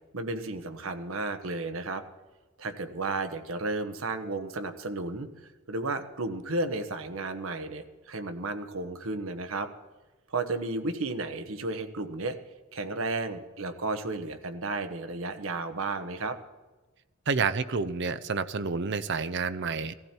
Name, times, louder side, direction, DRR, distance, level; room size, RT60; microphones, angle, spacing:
voice 1, 0.1-2.0 2.6-9.7 10.3-12.4 12.7-16.4, right 2 dB, 75° right, 8 dB, 1.2 m, -33 dB
voice 2, 17.3-19.9, right 4 dB, 55° right, 12 dB, 0.7 m, -29 dB
17.5 x 14.5 x 4.5 m, 1.2 s
head